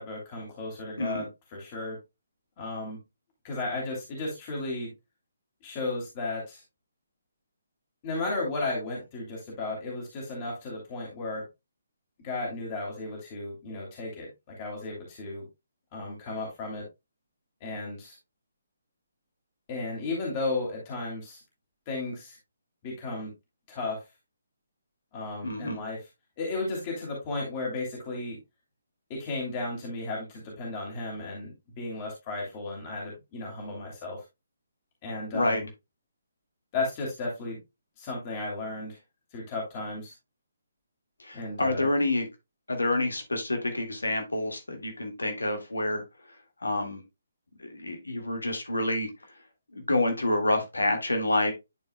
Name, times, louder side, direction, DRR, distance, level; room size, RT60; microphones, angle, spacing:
voice 1, 0.0-2.0 2.6-3.0 3.4-4.9 5.6-6.6 8.0-11.5 12.2-15.4 15.9-16.9 17.6-18.2 19.7-21.4 21.9-22.4 22.8-23.3 23.7-24.0 25.1-26.0 26.4-28.4 29.1-34.2 35.0-35.7 36.7-37.6 38.0-39.0 39.3-40.1 41.3-41.9, left 2 dB, 30° left, -2 dB, 2.6 m, -34 dB
voice 2, 25.4-25.8 35.3-35.6 41.2-42.3 42.7-46.0 46.6-47.0 47.6-49.1 49.9-51.5, left 2 dB, 80° left, 4 dB, 1.8 m, -28 dB
11.0 x 4.7 x 2.2 m, 0.23 s
figure-of-eight pair, 140°, 0 cm